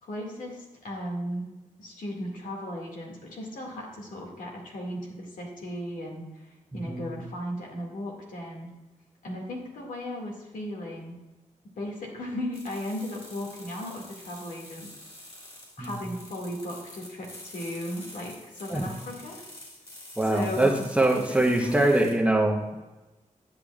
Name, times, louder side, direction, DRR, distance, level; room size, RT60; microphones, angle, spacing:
voice 1, 0.0-1.5 1.8-8.7 9.2-11.2 11.8-14.9 15.8-19.4 20.3-20.7 21.0-21.1 21.4-22.0, left 1 dB, 90° left, -1 dB, 2.0 m, -36 dB
voice 2, 6.7-7.1 15.8-15.9 18.7-18.8 20.2-22.8, right 1 dB, 10° right, 1 dB, 0.8 m, -23 dB
sound 1, 12.5-22.1, left 1 dB, 40° left, 2.2 m, -47 dB
10.0 x 8.1 x 2.4 m, 1.1 s
wide cardioid pair, 155°, 13 cm